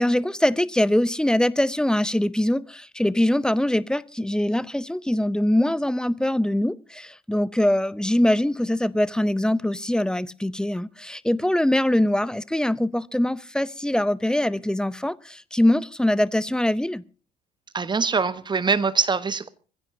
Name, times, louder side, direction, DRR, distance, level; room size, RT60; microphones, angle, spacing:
voice 1, 0.0-17.0, left 1 dB, 5° left, 0.6 m, -23 dB
voice 2, 17.7-19.5, right 5 dB, 20° right, 1.1 m, -23 dB
25.0 x 15.5 x 2.8 m
figure-of-eight pair, 50°, 21 cm